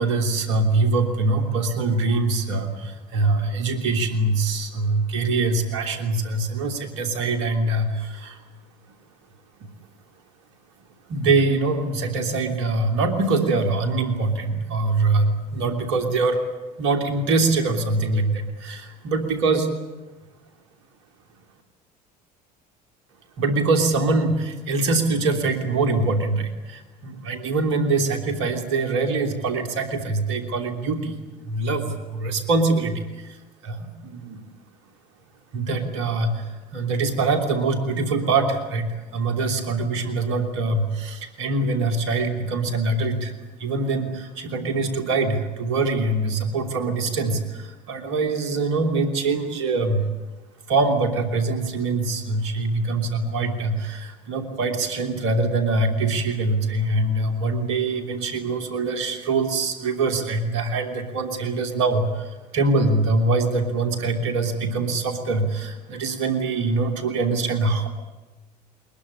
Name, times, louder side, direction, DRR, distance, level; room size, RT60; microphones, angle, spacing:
voice 1, 0.0-8.4 11.1-16.4 16.8-19.7 23.4-31.2 31.4-33.4 33.6-34.4 35.5-43.3 43.6-50.1 50.7-67.9, right 3 dB, 70° right, 5 dB, 3.2 m, -23 dB
21.0 x 21.0 x 9.9 m, 1.1 s
hypercardioid pair, 65°, 21 cm